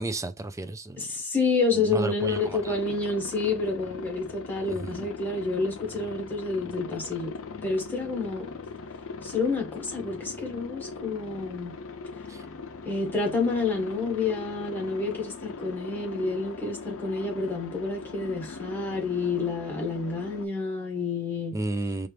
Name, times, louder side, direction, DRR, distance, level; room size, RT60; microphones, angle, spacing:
voice 1, 0.0-1.0 1.9-2.8 4.6-5.0 12.3-12.4 21.5-22.1, right 2 dB, 15° right, 0.3 m, -32 dB
voice 2, 1.0-7.3 7.6-8.5 9.2-11.7 12.8-21.6, left 3 dB, 10° left, 1.4 m, -29 dB
Aircraft, 2.2-20.5, left 4 dB, 65° left, 0.5 m, -40 dB
4.4 x 2.5 x 3.3 m
head